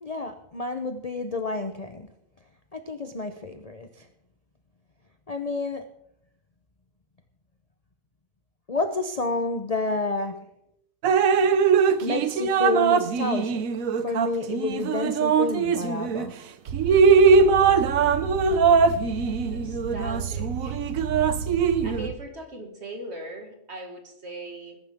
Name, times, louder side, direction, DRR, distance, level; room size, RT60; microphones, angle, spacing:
voice 1, 0.0-2.1 2.7-4.1 5.3-5.8 8.7-10.4 12.0-16.3, left 3 dB, 35° left, 7 dB, 0.7 m, -30 dB
Drip, 11.0-16.3 16.7-22.1, right 5 dB, 65° right, 1.1 m, -21 dB
sound 1, 16.7-22.2, right 6 dB, 85° right, 1.6 m, -33 dB
voice 2, 19.4-20.8 21.8-24.8, right 1 dB, 40° right, 3 dB, 2.4 m, -39 dB
20.0 x 11.0 x 3.6 m, 0.77 s
omnidirectional pair, 1.7 m